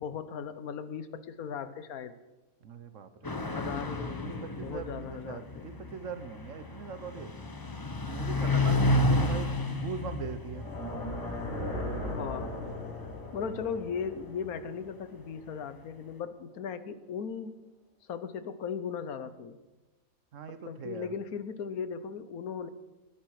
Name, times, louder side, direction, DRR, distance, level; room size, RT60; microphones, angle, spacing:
voice 1, 0.0-2.1 3.5-5.7 12.1-12.6 13.3-17.6 18.1-19.6 20.5-22.7, left 6 dB, 90° left, 12 dB, 1.4 m, -37 dB
voice 2, 2.6-3.3 4.2-4.3 4.6-7.3 8.1-10.7 13.4-13.7 20.3-21.1, right 6 dB, 65° right, 10 dB, 1.2 m, -41 dB
sound 1, 3.2-14.2, left 1 dB, 20° left, 0.8 m, -32 dB
sound 2, 10.4-15.6, left 1 dB, 55° left, 4.9 m, -38 dB
19.5 x 10.5 x 4.8 m, 1.1 s
omnidirectional pair, 1.5 m